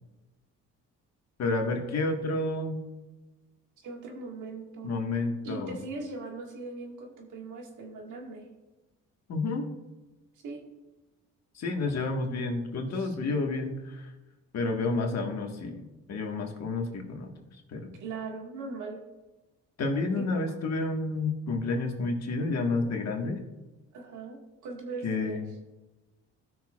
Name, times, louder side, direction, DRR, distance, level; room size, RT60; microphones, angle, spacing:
voice 1, 1.4-2.8 4.8-5.8 9.3-9.7 11.5-14.1 14.5-15.8 16.1-17.3 17.7-17.9 19.8-23.4 25.0-25.5, left 3 dB, 60° left, 2 dB, 1.7 m, -30 dB
voice 2, 3.8-4.9 5.4-8.5 10.4-10.6 12.9-13.2 18.0-19.0 20.2-20.3 23.9-25.4, right 3 dB, 75° right, 1 dB, 1.9 m, -40 dB
16.0 x 6.2 x 2.4 m, 1.1 s
cardioid pair, 90°, 30 cm